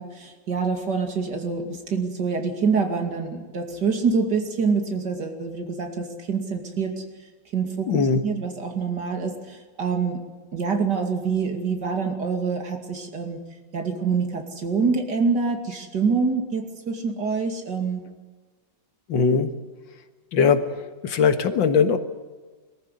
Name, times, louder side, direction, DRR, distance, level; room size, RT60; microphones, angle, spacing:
voice 1, 0.0-7.0 7.5-10.2 10.5-13.4 13.7-18.0, right 5 dB, 65° right, 5 dB, 3.1 m, -26 dB
voice 2, 7.9-8.2 19.1-19.5 20.3-22.0, left 5 dB, 85° left, 9 dB, 2.2 m, -20 dB
22.5 x 14.5 x 9.9 m, 1.3 s
omnidirectional pair, 2.0 m